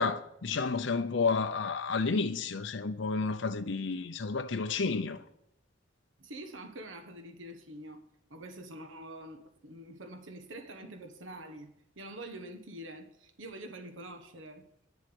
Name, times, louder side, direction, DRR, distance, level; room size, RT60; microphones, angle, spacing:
voice 1, 0.0-5.2, left 4 dB, 70° left, 0.7 m, -31 dB
voice 2, 6.2-8.0 8.3-14.7, right 1 dB, 80° right, 1.3 m, -46 dB
9.8 x 7.3 x 7.7 m
head